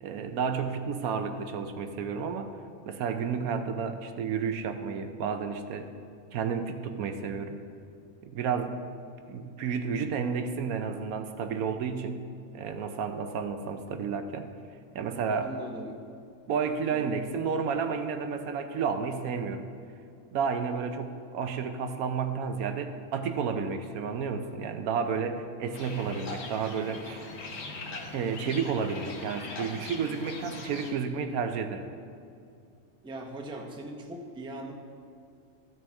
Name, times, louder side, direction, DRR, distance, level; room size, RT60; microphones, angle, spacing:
voice 1, 0.0-2.5 2.8-5.9 6.3-7.6 8.3-8.8 9.3-12.3 12.5-14.5 14.9-15.5 16.5-19.7 20.3-27.3 28.1-31.9, right 6 dB, 85° right, 7 dB, 1.1 m, -31 dB
voice 2, 15.4-16.0 16.8-17.1 33.0-34.7, right 1 dB, 5° right, 1 dB, 0.5 m, -40 dB
sound 1, 25.7-30.9, left 3 dB, 55° left, 1.1 m, -41 dB
14.0 x 6.2 x 3.5 m, 2.5 s
omnidirectional pair, 1.5 m